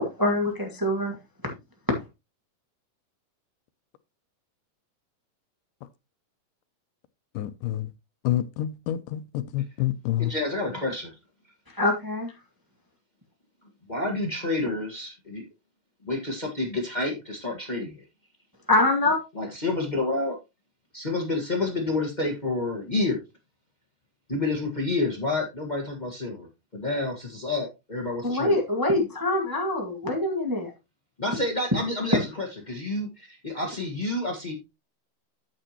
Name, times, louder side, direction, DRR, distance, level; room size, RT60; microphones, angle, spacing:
voice 1, 0.2-1.1 1.4-1.5 11.8-12.3 18.7-19.2 28.2-30.7, left 2 dB, 20° right, 0.6 m, -24 dB
voice 2, 7.4-7.9 8.2-10.3, left 13 dB, 85° left, 2.2 m, -28 dB
voice 3, 10.2-11.1 13.9-15.4 16.0-18.0 19.3-20.4 20.9-23.2 24.3-28.5 31.2-34.5, left 2 dB, 35° left, 0.7 m, -29 dB
9.0 x 8.5 x 2.9 m
omnidirectional pair, 3.8 m